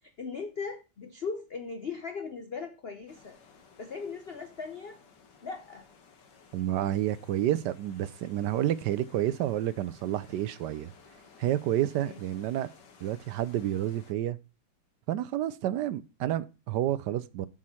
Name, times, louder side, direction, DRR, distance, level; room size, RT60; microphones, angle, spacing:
voice 1, 0.2-3.4 3.8-5.0 5.4-5.9 12.0-12.2, left 5 dB, 75° left, 0.5 m, -38 dB
sound 1, 3.1-14.1, left 5 dB, 60° left, 1.9 m, -57 dB
voice 2, 6.5-10.9 11.4-12.7 13.0-14.4 15.1-17.5, right 12 dB, 70° right, 1.0 m, -29 dB
7.4 x 6.3 x 4.2 m
omnidirectional pair, 2.2 m